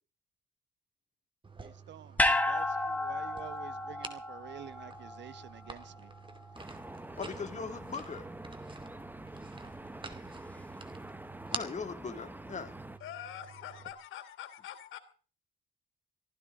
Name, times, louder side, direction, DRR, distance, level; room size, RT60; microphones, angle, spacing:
sound 1, 1.4-13.9, right 3 dB, 25° right, 2.6 m, -48 dB
voice 1, 1.6-6.1, right 10 dB, 65° right, 1.2 m, -49 dB
sound 2, 2.2-6.5 6.8-6.9, left 1 dB, 5° left, 2.1 m, -32 dB
sound 3, 6.5-13.0, right 2 dB, 10° right, 1.1 m, -46 dB
voice 2, 7.2-8.3 11.5-12.7, left 5 dB, 35° left, 2.5 m, -39 dB
voice 3, 13.0-15.0, left 10 dB, 85° left, 3.2 m, -44 dB
23.5 x 15.0 x 3.8 m
cardioid pair, 90°, 20 cm